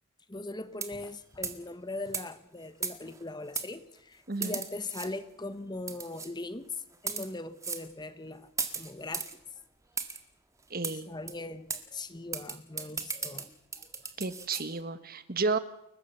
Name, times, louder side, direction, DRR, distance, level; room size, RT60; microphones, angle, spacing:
voice 1, 0.3-9.3 10.8-13.5 13.8-14.0 14.4-14.5, left 2 dB, 20° left, 12 dB, 1.1 m, -40 dB
sound 1, 0.7-1.1 1.4-1.6 2.1-2.3 2.8-3.2 3.6-3.7 4.4-5.1 5.9-6.3 6.9-7.3 7.6-7.9 8.6-9.3 10.0-10.2 10.8-11.0 11.3-11.4 11.7-11.8 12.3-14.6, right 5 dB, 15° right, 1.8 m, -36 dB
voice 2, 4.3-4.6 10.7-11.1 14.2-15.6, right 3 dB, 45° right, 13 dB, 1.3 m, -32 dB
30.0 x 15.0 x 6.9 m, 0.85 s
head